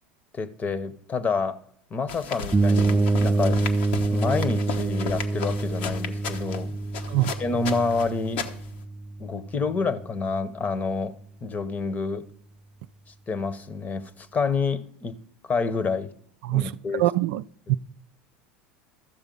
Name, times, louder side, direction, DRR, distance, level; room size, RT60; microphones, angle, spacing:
voice 1, 0.3-1.6 1.9-3.7 4.1-6.8 7.4-8.4 9.2-11.1 11.4-12.2 13.3-15.1 15.4-16.1 16.5-17.0 17.7-17.8, left 4 dB, 30° left, 0.9 m, -28 dB
sound 1, 2.1-8.8, left 6 dB, 75° left, 1.1 m, -35 dB
sound 2, 2.5-10.3, right 3 dB, 15° right, 0.6 m, -26 dB
voice 2, 16.4-17.4 17.7-17.8, right 16 dB, 65° right, 0.4 m, -24 dB
13.5 x 6.9 x 5.3 m
hypercardioid pair, 85°, 6 cm